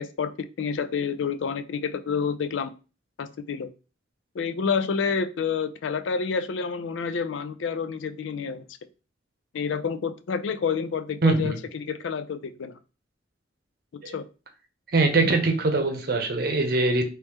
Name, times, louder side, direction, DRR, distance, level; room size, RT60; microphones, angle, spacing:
voice 1, 0.0-2.7 3.2-3.7 4.3-8.6 9.5-12.7 14.1-14.3 15.1-15.3, left 6 dB, 90° left, 11 dB, 0.4 m, -29 dB
voice 2, 11.2-11.6 14.0-14.1 14.9-17.0, right 3 dB, 55° right, 5 dB, 0.7 m, -22 dB
3.1 x 3.0 x 3.4 m, 0.34 s
head